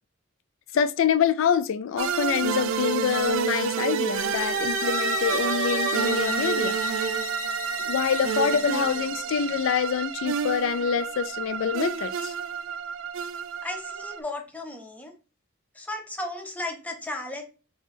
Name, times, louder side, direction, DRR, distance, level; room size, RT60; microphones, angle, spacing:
voice 1, 0.7-6.8 7.8-12.3, left 7 dB, 70° left, 0.3 m, -26 dB
sound 1, 2.0-14.2, right 7 dB, 70° right, 0.4 m, -29 dB
sound 2, 4.2-9.1, left 3 dB, 35° left, 1.1 m, -32 dB
voice 2, 13.6-15.1 15.7-17.4, left 2 dB, 10° left, 0.6 m, -35 dB
3.6 x 2.3 x 4.0 m
head